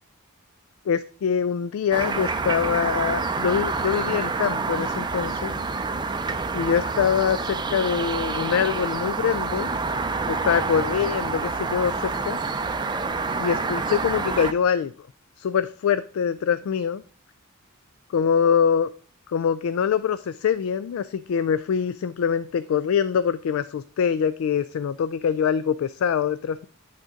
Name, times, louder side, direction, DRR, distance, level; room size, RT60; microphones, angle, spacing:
voice 1, 0.9-5.5 6.5-9.7 10.3-12.4 13.4-14.9 15.4-17.0 18.1-18.9 19.3-26.7, left 7 dB, 75° left, 14 dB, 0.3 m, -24 dB
sound 1, 1.9-14.5, right 4 dB, 20° right, 0.4 m, -27 dB
8.7 x 4.0 x 5.0 m, 0.41 s
head